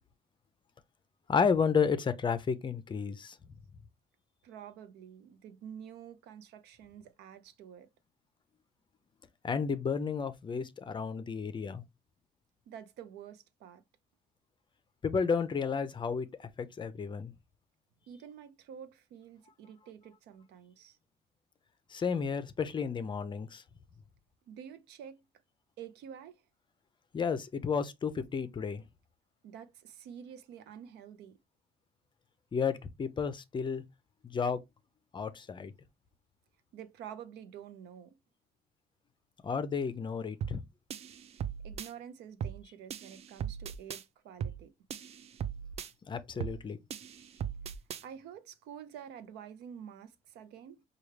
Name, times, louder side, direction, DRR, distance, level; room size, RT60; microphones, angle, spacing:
voice 1, 1.3-3.4 9.4-11.8 15.0-16.3 16.6-17.3 21.9-23.6 27.1-28.8 32.5-33.8 34.2-34.6 35.1-35.7 39.4-40.6 46.1-46.8, left 6 dB, 30° left, 0.5 m, -32 dB
voice 2, 4.4-7.9 12.7-13.8 18.1-21.0 24.5-25.2 25.8-26.4 29.4-31.4 36.7-38.2 41.6-44.7 48.0-50.8, right 8 dB, 80° right, 0.6 m, -48 dB
sound 1, 40.4-40.6 40.9-41.9 42.4-42.6 42.9-44.0 44.4-44.6 44.9-45.9 46.4-46.6 46.9-48.0, right 8 dB, 40° right, 0.4 m, -38 dB
4.6 x 2.3 x 3.2 m
cardioid pair, 110°, 17 cm